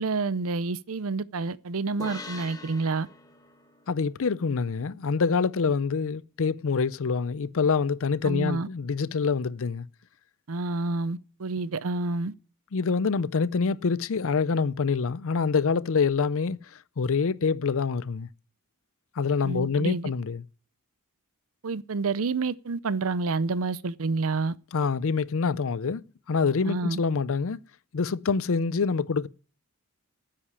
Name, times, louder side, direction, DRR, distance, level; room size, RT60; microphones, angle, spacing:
voice 1, 0.0-3.1 8.2-8.7 10.5-12.3 19.4-20.1 21.6-24.5 26.6-27.0, right 3 dB, 65° right, 0.6 m, -28 dB
sound 1, 2.0-5.5, left 3 dB, 15° left, 1.3 m, -45 dB
voice 2, 3.9-9.9 12.7-16.6 17.0-18.3 19.2-20.4 24.7-26.0 26.3-27.6 27.9-29.3, left 5 dB, 65° left, 0.5 m, -26 dB
10.0 x 8.7 x 9.6 m
head